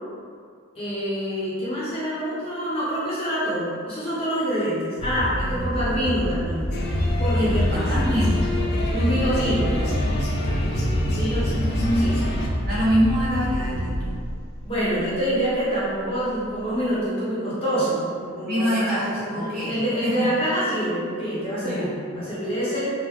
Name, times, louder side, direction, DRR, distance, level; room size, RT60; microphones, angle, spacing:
voice 1, 0.7-6.7 6.9-8.0 8.9-9.9 11.1-11.6 11.9-12.2 14.6-21.9 22.1-22.9, equal, 25° left, -9 dB, 0.7 m, -26 dB
sound 1, 5.0-15.2, equal, 85° right, 0.5 m, -28 dB
sound 2, 6.7-12.5, left 1 dB, 50° left, 0.4 m, -25 dB
voice 2, 7.3-8.5 10.3-10.8 11.1-11.3 12.6-14.0 18.4-20.1 21.6-22.3, equal, 40° right, -10 dB, 1.0 m, -26 dB
3.6 x 2.0 x 3.0 m, 2.2 s
head